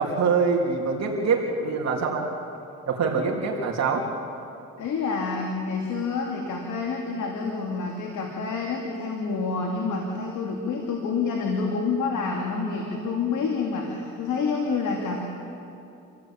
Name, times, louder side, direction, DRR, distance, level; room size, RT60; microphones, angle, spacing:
voice 1, 0.0-2.3 2.9-4.0, right 5 dB, 60° right, -1 dB, 3.3 m, -24 dB
voice 2, 4.8-15.2, left 4 dB, 80° left, 1 dB, 2.7 m, -28 dB
27.0 x 16.0 x 9.0 m, 2.7 s
cardioid pair, 90°, 30 cm